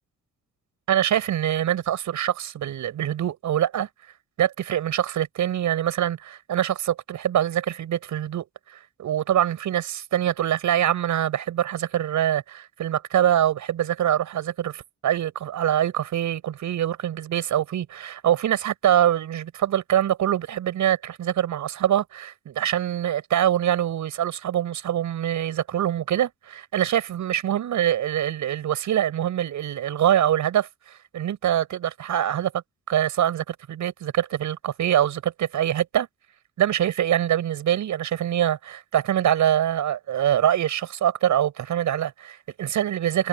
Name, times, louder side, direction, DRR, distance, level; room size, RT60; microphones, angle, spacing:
voice 1, 0.9-3.9 4.4-8.4 8.7-36.1 36.6-43.3, right 11 dB, 75° right, 7.1 m, -24 dB
wide cardioid pair, 175°, 30 cm